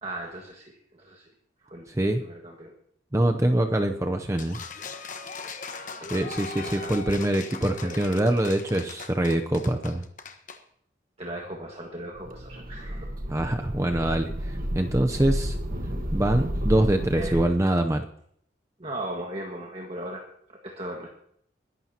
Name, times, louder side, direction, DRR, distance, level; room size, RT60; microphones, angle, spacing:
voice 1, 0.0-1.3 1.6-2.7 6.0-7.0 7.8-8.0 11.2-13.1 17.1-17.4 18.8-21.1, right 1 dB, 35° right, 0 dB, 1.6 m, -38 dB
voice 2, 1.9-2.2 3.1-4.6 6.1-10.0 13.3-15.6 16.1-18.0, right 1 dB, 15° right, 5 dB, 0.6 m, -24 dB
sound 1, 4.4-10.6, left 5 dB, 45° left, 1.2 m, -39 dB
sound 2, 12.2-17.5, equal, 50° right, 1.4 m, -31 dB
21.5 x 12.0 x 2.9 m, 0.67 s
head